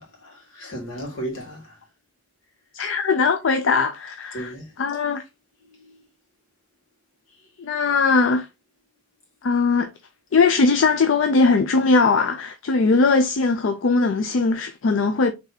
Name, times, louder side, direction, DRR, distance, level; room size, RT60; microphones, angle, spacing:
voice 1, 0.0-1.9 2.8-2.9 4.3-4.8 5.6-6.1 7.3-7.8, right 1 dB, 85° left, 2.0 m, -36 dB
voice 2, 2.7-4.5 4.8-5.2 7.6-8.5 9.4-9.9 10.3-15.3, left 4 dB, 65° left, 0.4 m, -20 dB
4.0 x 3.5 x 2.7 m
head